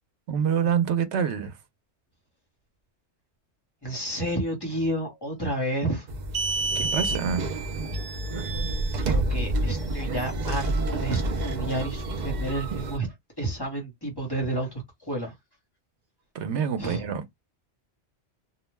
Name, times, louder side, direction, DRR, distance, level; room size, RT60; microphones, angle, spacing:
voice 1, 0.3-1.5 6.8-7.4 16.3-17.3, right 7 dB, 85° right, 0.9 m, -26 dB
voice 2, 3.8-6.1 9.0-15.3 16.8-17.1, right 1 dB, 25° left, 1.0 m, -30 dB
sound 1, 6.1-13.0, right 2 dB, 55° right, 0.5 m, -28 dB
2.4 x 2.1 x 3.2 m
omnidirectional pair, 1.2 m